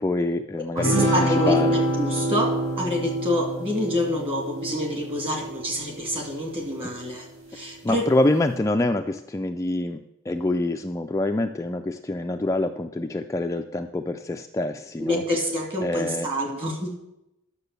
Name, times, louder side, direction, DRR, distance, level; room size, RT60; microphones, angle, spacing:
voice 1, 0.0-1.8 7.8-15.2 15.8-16.3, left 2 dB, 15° left, 5 dB, 0.3 m, -26 dB
voice 2, 0.7-7.3 7.5-8.1 15.0-17.0, equal, 25° right, 1 dB, 2.5 m, -27 dB
sound 1, 0.8-6.4, right 1 dB, 65° right, 2.7 m, -26 dB
9.9 x 6.8 x 6.7 m, 0.87 s
head